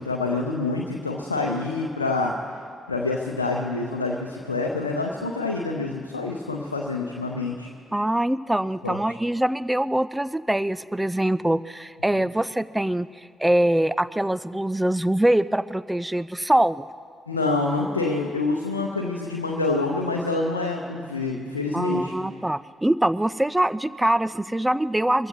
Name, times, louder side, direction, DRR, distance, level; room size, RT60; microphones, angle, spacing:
voice 1, 0.0-2.3 2.9-7.7 8.8-9.2 12.2-12.3 17.3-22.1, left 3 dB, 85° left, 0 dB, 0.7 m, -27 dB
voice 2, 7.9-13.1 13.4-16.8 21.7-25.3, right 1 dB, 10° right, 17 dB, 0.3 m, -23 dB
23.5 x 15.0 x 3.0 m, 2.1 s
figure-of-eight pair, 40°, 0 cm